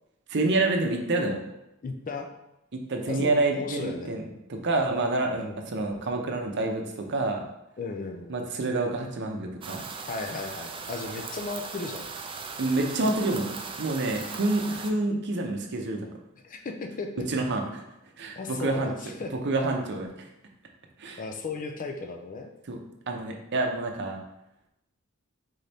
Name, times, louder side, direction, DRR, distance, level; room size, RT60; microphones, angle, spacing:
voice 1, 0.3-1.4 2.7-4.2 4.5-6.8 7.1-7.4 8.3-9.9 12.6-13.5 13.8-16.1 17.3-17.8 18.2-18.9 19.4-20.1 21.0-21.2 22.7-22.8 23.1-24.2, right 2 dB, 55° right, 2 dB, 0.7 m, -27 dB
voice 2, 1.8-2.3 3.1-4.2 5.4-5.6 7.8-8.3 10.1-12.1 16.4-17.2 18.3-19.3 21.2-22.5, left 3 dB, 40° left, 4 dB, 0.4 m, -35 dB
sound 1, 9.6-14.9, right 4 dB, 25° right, 0.4 m, -38 dB
4.1 x 3.8 x 3.4 m, 0.87 s
head